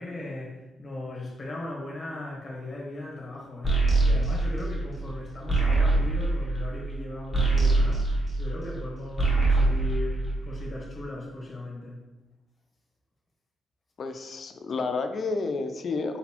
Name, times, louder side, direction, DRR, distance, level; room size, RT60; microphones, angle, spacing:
voice 1, 0.0-3.7 4.0-8.1 8.4-12.0, left 2 dB, 25° left, -3 dB, 1.1 m, -38 dB
sound 1, 3.6-8.8 9.1-10.8, right 2 dB, ahead, 1.1 m, -24 dB
voice 2, 14.0-16.2, left 3 dB, 40° left, 7 dB, 0.3 m, -30 dB
4.1 x 4.0 x 2.9 m, 1.1 s
cardioid pair, 165°, 0 cm